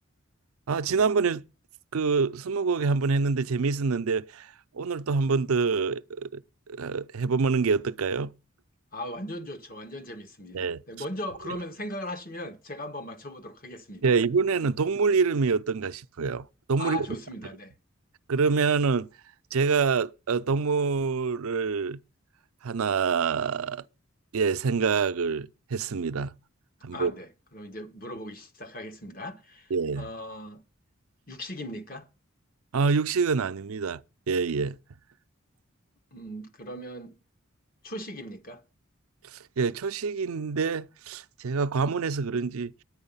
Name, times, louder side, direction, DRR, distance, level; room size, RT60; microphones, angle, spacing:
voice 1, 0.7-1.4 1.9-6.4 6.7-8.3 10.5-10.8 14.0-17.1 18.3-19.1 19.5-22.0 22.6-23.8 24.3-26.3 26.8-27.1 29.7-30.1 32.7-34.0 34.3-34.8 39.3-42.7, right 5 dB, 85° right, 0.5 m, -26 dB
voice 2, 8.9-14.0 16.8-17.7 26.9-30.6 31.3-32.1 36.1-37.1 37.8-38.6, left 1 dB, 40° left, 1.2 m, -38 dB
9.7 x 9.5 x 5.5 m
head